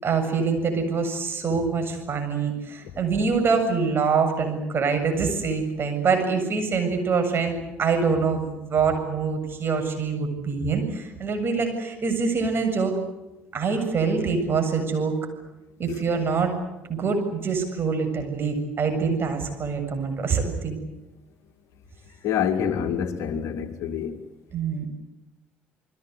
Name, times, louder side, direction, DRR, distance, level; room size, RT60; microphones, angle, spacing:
voice 1, 0.0-13.0 13.5-15.2 15.8-16.5 16.9-20.8 24.5-24.9, right 5 dB, 35° right, 7.6 m, -25 dB
voice 2, 22.2-24.1, left 8 dB, 50° left, 2.3 m, -26 dB
30.0 x 21.5 x 8.2 m
figure-of-eight pair, 50°, 6 cm